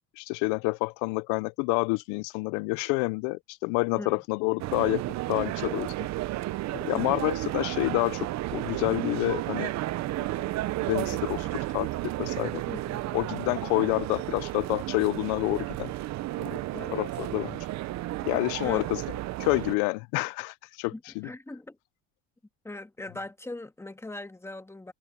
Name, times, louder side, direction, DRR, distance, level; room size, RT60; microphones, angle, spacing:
voice 1, 0.2-5.0 5.3-5.9 6.8-9.7 10.9-12.6 13.1-15.9 16.4-16.5 16.9-17.6 18.2-19.0 19.4-21.3, left 27 dB, 85° left, 0.5 m, -28 dB
sound 1, 4.6-19.8, right 16 dB, 60° right, 0.8 m, -33 dB
Car / Engine starting, 10.4-10.5 10.8-16.0, right 11 dB, 45° right, 2.2 m, -50 dB
voice 2, 12.7-13.0 16.7-17.1 18.6-18.9 20.9-21.8 22.6-24.9, left 2 dB, 10° left, 1.6 m, -40 dB
supercardioid pair, 95°, 31 cm